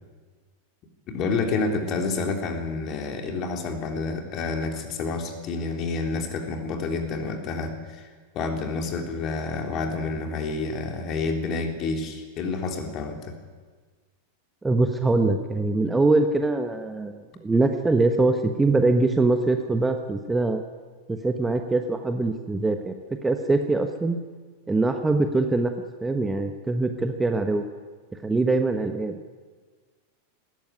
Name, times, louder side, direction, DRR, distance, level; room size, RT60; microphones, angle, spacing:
voice 1, 1.1-8.1 8.3-13.4, left 4 dB, 35° left, 4 dB, 3.5 m, -29 dB
voice 2, 14.6-20.6 21.1-24.2 24.7-25.7 26.0-27.6 28.2-29.4, right 2 dB, 10° right, 6 dB, 1.2 m, -23 dB
19.5 x 14.5 x 9.6 m, 1.5 s
figure-of-eight pair, 90°, 0 cm